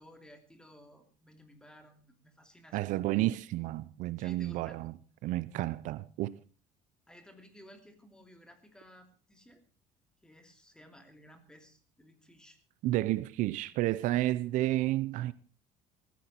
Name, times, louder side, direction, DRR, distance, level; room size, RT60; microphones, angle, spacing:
voice 1, 0.0-2.9 4.2-4.8 7.1-9.6 10.2-12.6, equal, 5° left, 2.9 m, -56 dB
voice 2, 2.7-4.9 5.2-6.4 12.8-15.3, right 16 dB, 65° right, 0.7 m, -31 dB
18.0 x 15.0 x 4.4 m
cardioid pair, 150°, 14 cm